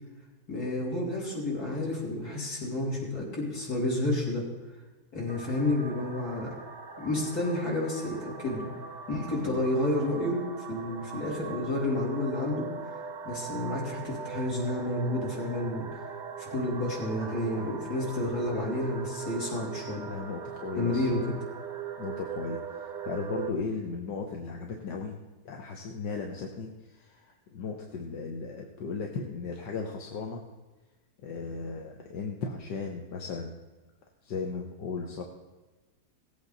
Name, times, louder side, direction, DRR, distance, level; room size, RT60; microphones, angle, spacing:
voice 1, 0.5-4.4 5.1-6.5 7.0-8.7 9.1-12.7 13.2-16.0 16.4-20.1 20.8-21.3, left 1 dB, 65° left, -4 dB, 3.9 m, -30 dB
sound 1, 5.3-23.5, right 7 dB, 45° right, 0.6 m, -40 dB
voice 2, 20.1-21.3 22.0-22.6 23.0-25.2 25.4-30.4 31.2-33.5 34.2-35.2, left 4 dB, 85° left, 2 dB, 1.7 m, -36 dB
17.5 x 8.5 x 4.0 m, 1.2 s
omnidirectional pair, 1.8 m